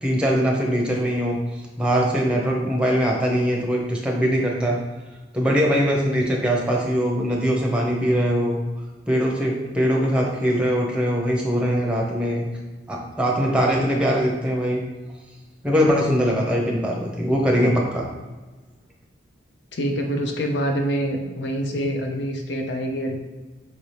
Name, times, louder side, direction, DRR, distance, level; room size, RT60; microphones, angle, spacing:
voice 1, 0.0-1.4 1.8-4.8 5.3-8.6 9.1-12.5 12.9-14.8 15.6-18.0, equal, 5° right, -2 dB, 0.6 m, -21 dB
voice 2, 19.7-23.1, equal, 75° left, 3 dB, 0.6 m, -25 dB
5.5 x 2.7 x 3.2 m, 1.2 s
head